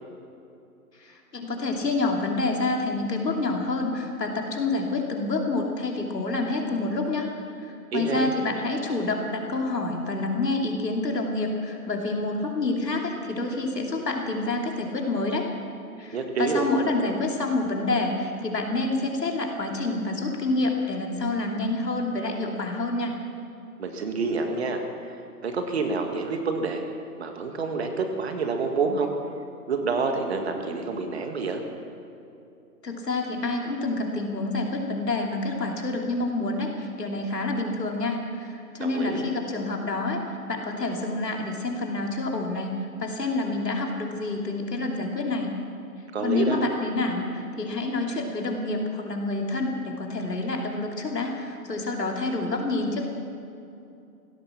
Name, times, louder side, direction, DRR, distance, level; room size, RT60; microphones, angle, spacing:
voice 1, 1.0-7.3 7.6-15.5 16.0-23.1 32.8-40.2 40.5-42.7 43.0-45.5 46.2-53.1, left 2 dB, 90° left, 1 dB, 3.1 m, -28 dB
voice 2, 7.9-8.3 16.1-16.7 23.8-24.8 25.4-26.8 27.2-29.1 29.7-31.6 38.8-39.3 46.1-46.6, right 4 dB, 40° right, 5 dB, 1.8 m, -28 dB
16.0 x 14.0 x 6.0 m, 2.7 s
hypercardioid pair, 160°, 47 cm